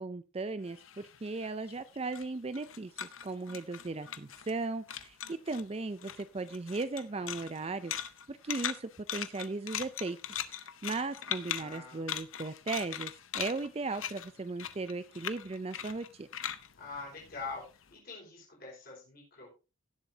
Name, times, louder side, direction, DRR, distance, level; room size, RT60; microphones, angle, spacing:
voice 1, 0.0-16.3, right 3 dB, 30° right, 13 dB, 0.4 m, -37 dB
sound 1, 0.7-4.6 4.9-5.7 6.0-17.8, left 10 dB, 75° left, 0.8 m, -40 dB
voice 2, 7.2-7.8 11.5-12.2 16.8-19.5, left 4 dB, 45° left, -4 dB, 5.1 m, -45 dB
18.0 x 7.5 x 2.8 m, 0.30 s
head